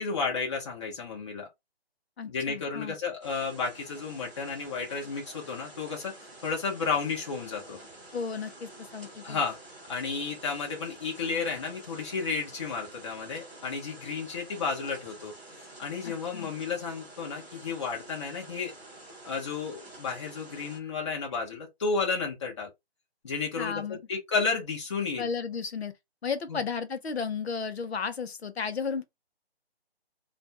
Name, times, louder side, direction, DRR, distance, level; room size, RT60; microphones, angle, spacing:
voice 1, 0.0-1.5 2.3-6.1 6.4-7.8 9.2-9.6 9.9-15.3 15.8-18.7 19.2-22.7 23.2-25.3 26.5-26.6, left 5 dB, 30° left, 0.9 m, -32 dB
voice 2, 2.2-3.0 8.1-9.4 16.0-16.5 23.6-24.0 25.2-25.9 26.2-29.0, left 5 dB, 80° left, 0.8 m, -34 dB
sound 1, 3.2-20.8, right 2 dB, 10° right, 0.7 m, -49 dB
2.5 x 2.3 x 4.0 m
figure-of-eight pair, 160°, 31 cm